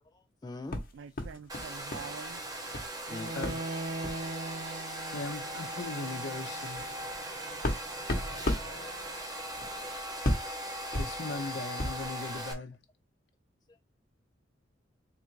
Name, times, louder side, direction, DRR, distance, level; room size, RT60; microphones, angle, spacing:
voice 1, 0.1-0.8 3.1-3.3 10.7-11.2 13.7-13.8, left 3 dB, 20° left, 0.3 m, -46 dB
sound 1, 0.7-2.1 2.4-2.9 3.4-3.6 4.0-4.3 5.1-5.2 5.6-5.7 6.2-12.1, left 1 dB, 50° left, 1.1 m, -35 dB
voice 2, 0.9-2.4, right 6 dB, 70° right, 0.3 m, -46 dB
Domestic sounds home sounds, 1.5-12.5, right 1 dB, 20° right, 0.9 m, -39 dB
Bowed string instrument, 3.1-9.1, right 2 dB, 45° right, 1.2 m, -42 dB
voice 3, 3.3-3.6 5.1-6.8 11.0-12.8, left 3 dB, 65° left, 0.8 m, -38 dB
3.6 x 2.5 x 4.5 m
head